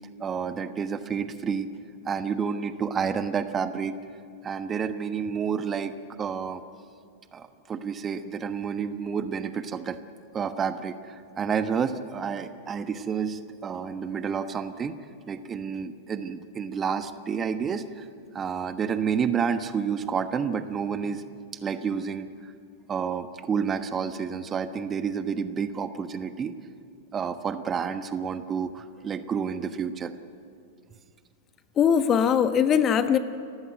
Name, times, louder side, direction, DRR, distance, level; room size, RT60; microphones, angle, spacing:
voice 1, 0.2-1.7 2.0-4.0 4.4-5.9 6.2-6.6 7.3-10.0 10.3-15.0 15.3-18.1 18.3-21.2 21.6-22.5 22.9-26.5 27.1-30.1, right 6 dB, 25° right, 10 dB, 1.2 m, -30 dB
voice 2, 31.8-33.2, left 8 dB, 30° left, 11 dB, 1.2 m, -21 dB
29.5 x 15.0 x 9.4 m, 2.3 s
figure-of-eight pair, 95°, 0 cm